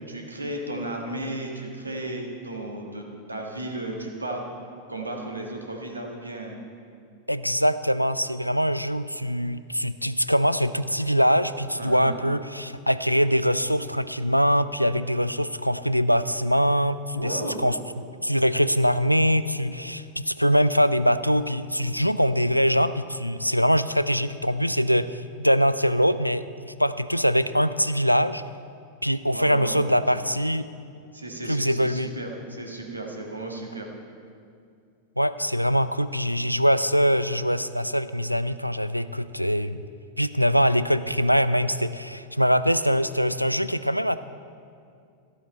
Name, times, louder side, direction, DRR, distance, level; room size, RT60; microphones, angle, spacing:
voice 1, 0.1-4.5 4.9-6.6 11.8-12.2 17.1-17.6 29.2-30.2 31.1-33.9, right 1 dB, 80° right, 1 dB, 1.5 m, -34 dB
voice 2, 7.3-17.8 18.2-28.4 29.0-30.7 31.5-32.1 35.2-39.9 40.2-44.2, equal, 90° left, 13 dB, 0.3 m, -23 dB
14.0 x 8.4 x 4.4 m, 2.4 s
figure-of-eight pair, 90°, 0 cm